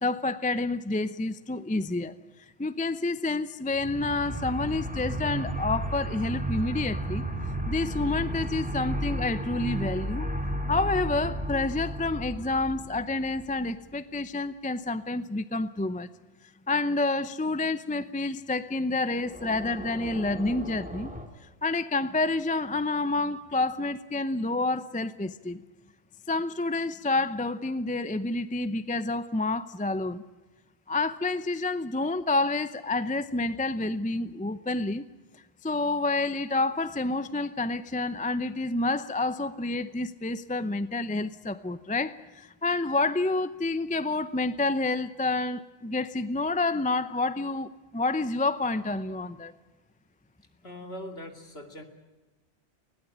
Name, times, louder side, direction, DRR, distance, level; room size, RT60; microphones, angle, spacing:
voice 1, 0.0-2.2 2.6-7.2 7.7-10.3 10.7-16.1 16.7-21.1 21.6-25.6 26.3-30.2 30.9-35.0 35.6-49.5, left 2 dB, 10° left, 13 dB, 0.5 m, -29 dB
sound 1, 3.7-13.7 19.2-21.3, right 1 dB, 5° right, 2.1 m, -33 dB
voice 2, 50.6-51.8, left 1 dB, 60° left, 5 dB, 3.0 m, -41 dB
20.5 x 17.5 x 9.9 m, 1.2 s
omnidirectional pair, 1.2 m